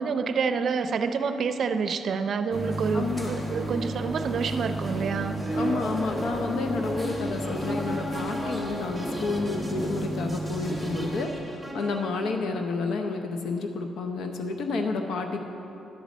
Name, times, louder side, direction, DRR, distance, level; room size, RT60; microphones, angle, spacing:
voice 1, 0.0-5.6, right 5 dB, 60° right, 9 dB, 0.5 m, -28 dB
sound 1, 2.5-11.2, right 1 dB, 20° left, 1.1 m, -32 dB
voice 2, 2.9-3.4 5.5-15.4, left 3 dB, 75° left, 4 dB, 0.7 m, -30 dB
sound 2, 6.4-12.6, left 1 dB, 5° left, 1.7 m, -38 dB
11.0 x 5.1 x 7.3 m, 2.9 s
cardioid pair, 95°, 0 cm